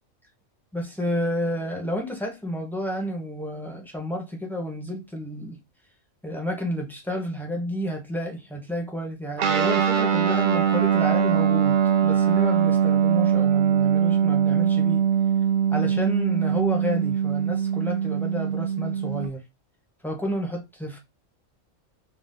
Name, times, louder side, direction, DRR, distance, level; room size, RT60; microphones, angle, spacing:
voice 1, 0.7-5.6 6.2-15.1 15.7-19.4 20.0-21.0, equal, ahead, 0.7 m, -30 dB
Guitar, 9.4-19.3, right 8 dB, 60° right, 0.5 m, -22 dB
4.0 x 2.4 x 2.5 m
omnidirectional pair, 1.3 m